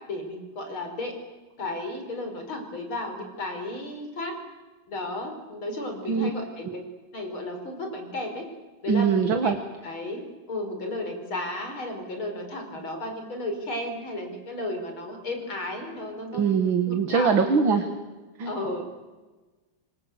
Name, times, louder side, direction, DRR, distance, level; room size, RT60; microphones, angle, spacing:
voice 1, 0.1-1.1 1.6-4.3 4.9-6.8 7.1-8.4 8.8-9.1 9.4-9.5 9.8-16.5 16.9-17.5 17.7-17.8 18.4-18.8, left 2 dB, 75° left, 4 dB, 6.0 m, -33 dB
voice 2, 8.9-9.6 16.3-17.8 18.4-18.5, right 6 dB, 70° right, 6 dB, 2.5 m, -22 dB
27.5 x 25.5 x 8.2 m, 1.2 s
omnidirectional pair, 2.2 m